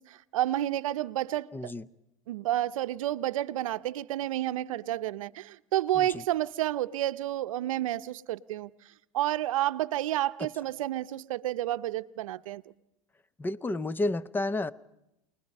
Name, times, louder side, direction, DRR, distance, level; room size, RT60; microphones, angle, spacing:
voice 1, 0.0-1.7 2.3-8.7 9.1-12.6, right 14 dB, 85° right, 0.7 m, -30 dB
voice 2, 1.5-1.8 6.0-6.1 13.4-14.7, left 2 dB, 10° left, 0.7 m, -30 dB
28.5 x 20.0 x 5.4 m
supercardioid pair, 115°, 17 cm